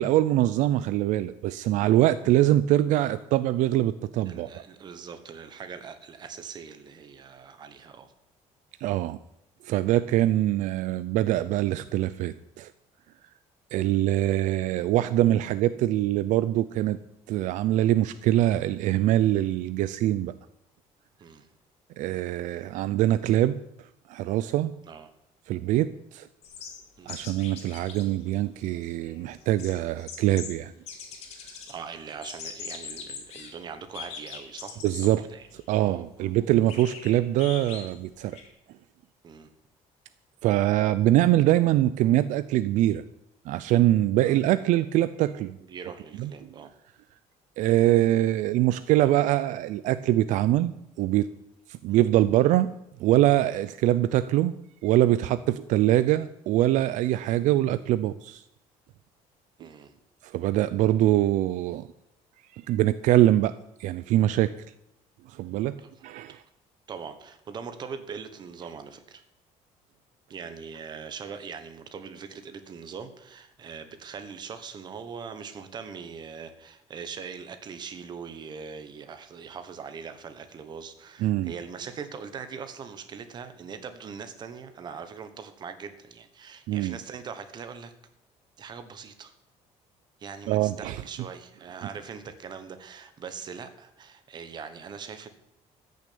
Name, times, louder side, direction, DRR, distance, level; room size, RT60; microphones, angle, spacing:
voice 1, 0.0-4.5 8.8-9.2 9.6-12.7 13.7-17.0 17.3-20.3 22.0-23.6 24.1-24.7 25.5-26.3 27.1-30.7 34.8-35.3 35.5-38.4 40.4-43.0 43.5-45.6 46.2-46.3 47.6-50.7 51.0-51.3 51.8-52.7 53.0-54.5 54.8-58.4 59.6-59.7 60.2-61.9 62.5-63.5 63.8-64.5 65.3-65.8 66.0-66.4 81.2-81.5 86.7-87.0 90.5-91.0, right 14 dB, 70° right, 14 dB, 0.5 m, -23 dB
voice 2, 4.2-8.1 21.2-21.5 24.9-25.1 27.0-27.1 31.7-35.5 35.8-36.3 39.2-39.5 44.2-44.3 45.7-46.7 51.9-52.0 59.6-59.9 65.8-66.4 66.9-69.2 70.3-87.9 88.6-89.3 90.2-95.3, right 6 dB, 35° right, 9 dB, 1.3 m, -41 dB
sound 1, 26.4-28.0 28.3-28.4 28.6-30.5 30.9-31.7 32.1-33.5 33.9-35.1 35.6-35.7 36.7-38.5, left 6 dB, 50° left, 2.9 m, -41 dB
14.0 x 6.6 x 8.6 m, 0.80 s
cardioid pair, 170°, 13 cm